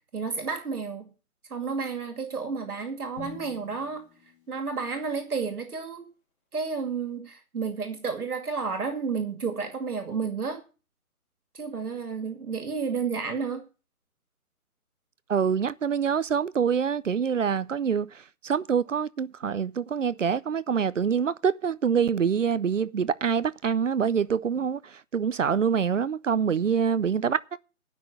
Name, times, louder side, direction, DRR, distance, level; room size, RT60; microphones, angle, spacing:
voice 1, 0.1-1.1 1.5-4.1 4.5-6.1 6.5-10.6 11.5-13.6, right 5 dB, 75° right, 2.4 m, -31 dB
Drum, 3.2-5.2, left 5 dB, 35° left, 3.4 m, -48 dB
voice 2, 15.3-27.4, right 7 dB, 55° right, 0.6 m, -25 dB
10.0 x 6.1 x 8.1 m
hypercardioid pair, 175°, 44 cm